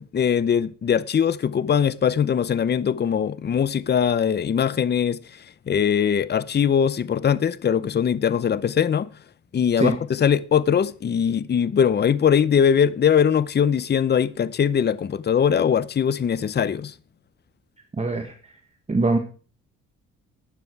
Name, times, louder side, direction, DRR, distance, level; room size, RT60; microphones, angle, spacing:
voice 1, 0.0-9.1 9.5-16.9, left 8 dB, 35° left, 0.7 m, -21 dB
voice 2, 18.0-18.5 18.9-19.2, right 3 dB, 20° right, 1.5 m, -23 dB
12.5 x 9.3 x 4.7 m
cardioid pair, 90°, 30 cm